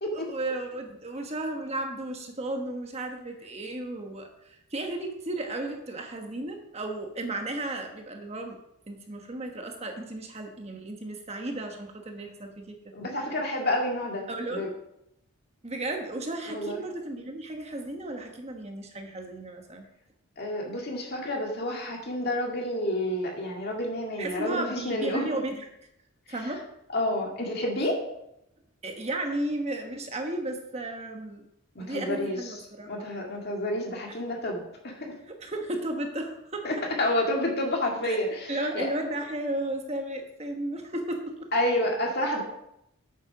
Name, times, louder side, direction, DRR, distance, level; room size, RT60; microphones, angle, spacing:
voice 1, 0.1-8.6 8.9-12.8 14.3-14.7 15.6-19.8 24.2-25.7 26.3-26.6 28.8-31.4 31.8-33.1 35.3-36.7 38.0-38.2 38.5-41.3, right 1 dB, 30° right, 3 dB, 1.1 m, -34 dB
voice 2, 12.9-14.7 16.5-16.8 20.4-25.2 26.9-28.0 31.8-32.4 32.9-35.1 36.6-38.9 41.5-42.4, left 1 dB, 45° left, 0 dB, 2.1 m, -29 dB
8.5 x 7.4 x 6.0 m, 0.81 s
head